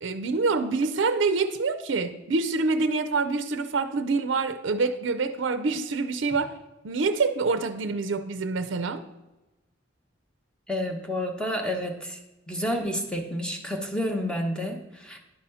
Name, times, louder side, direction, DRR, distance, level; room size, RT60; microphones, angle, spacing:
voice 1, 0.0-6.5 6.8-9.0, right 4 dB, 65° right, 9 dB, 0.5 m, -26 dB
voice 2, 10.7-12.2 12.5-15.2, left 1 dB, 5° left, 2 dB, 1.0 m, -30 dB
10.5 x 4.2 x 5.4 m, 1.0 s
head